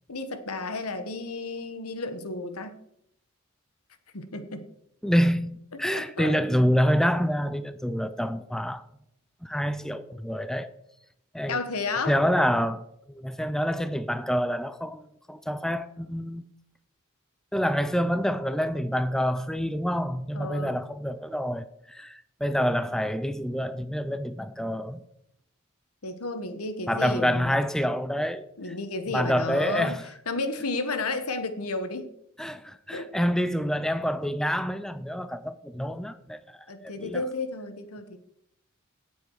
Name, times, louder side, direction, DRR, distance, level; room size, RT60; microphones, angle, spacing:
voice 1, 0.1-2.7 4.1-4.7 5.7-6.3 11.5-12.2 20.3-20.7 26.0-27.5 28.6-30.0 30.3-32.1 32.9-33.3 36.7-38.2, left 3 dB, 80° left, 1.4 m, -32 dB
voice 2, 5.0-8.8 9.4-10.7 11.3-11.6 12.1-16.4 17.5-25.0 26.9-28.5 29.1-30.0 32.4-36.4 36.8-37.2, equal, ahead, 0.5 m, -27 dB
17.0 x 7.2 x 4.8 m
head